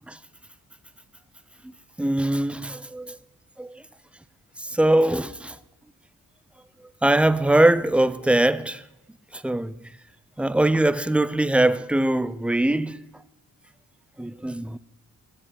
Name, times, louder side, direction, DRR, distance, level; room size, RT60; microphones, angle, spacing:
voice 1, 1.6-3.2 3.6-3.8 4.6-5.6 7.0-8.8 9.3-9.8 10.4-13.0 14.2-14.8, right 1 dB, 5° right, 0.4 m, -22 dB
13.5 x 9.0 x 4.3 m
cardioid pair, 75°, 35 cm